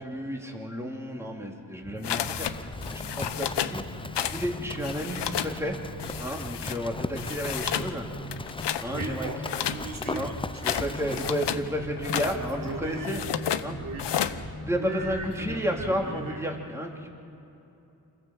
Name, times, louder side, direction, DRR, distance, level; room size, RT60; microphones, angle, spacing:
voice 1, 0.0-3.8 4.2-5.8 6.2-8.1 8.8-9.3 10.1-10.3 10.8-13.2 13.6-13.8 14.6-17.1, equal, 5° right, 0 dB, 3.3 m, -32 dB
sound 1, 1.8-16.3, equal, 35° left, 3.1 m, -40 dB
sound 2, 2.0-2.5 2.8-3.8 4.1-4.5 4.7-5.5 6.0-6.8 7.2-7.9 8.3-8.9 9.4-11.6 12.0-12.4 13.0-13.6 14.0-14.4, left 10 dB, 80° left, 1.0 m, -31 dB
Livestock farm animals working animals, 2.4-13.2, left 3 dB, 15° left, 0.5 m, -40 dB
voice 2, 8.4-11.4 11.8-13.2 13.7-14.4 14.7-16.4, right 3 dB, 50° right, 0 dB, 4.1 m, -39 dB
26.5 x 15.0 x 7.5 m, 2.8 s
cardioid pair, 60°, 41 cm